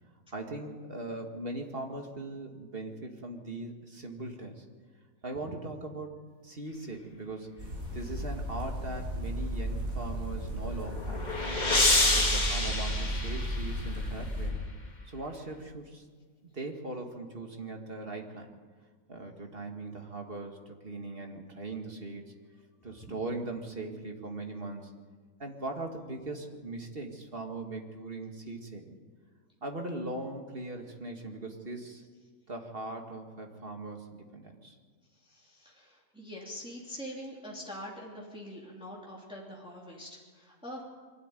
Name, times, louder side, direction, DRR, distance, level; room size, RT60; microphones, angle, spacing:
voice 1, 0.3-4.6 5.2-6.1 6.4-11.5 12.0-14.6 15.0-16.0 16.4-18.5 19.1-22.2 22.8-24.9 25.4-28.9 29.6-32.0 32.5-34.8, right 2 dB, 40° right, 3 dB, 2.2 m, -40 dB
sound 1, 7.6-14.5, equal, 80° right, 7.2 m, -34 dB
sound 2, 10.6-14.0, left 2 dB, 30° left, 2.5 m, -28 dB
voice 2, 35.2-40.8, equal, 5° right, -4 dB, 3.1 m, -44 dB
23.5 x 13.0 x 9.2 m, 1.5 s
omnidirectional pair, 1.4 m